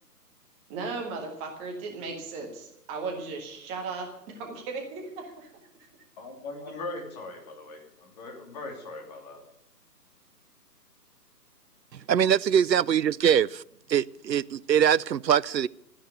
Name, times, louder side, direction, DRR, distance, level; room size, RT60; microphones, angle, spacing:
voice 1, 0.7-5.5, right 4 dB, 15° right, 1.5 m, -36 dB
voice 2, 6.2-9.4, left 2 dB, 25° left, 2.9 m, -40 dB
voice 3, 11.9-13.5 13.9-15.7, right 9 dB, 90° right, 0.6 m, -23 dB
13.0 x 10.0 x 9.4 m
figure-of-eight pair, 145°, 49 cm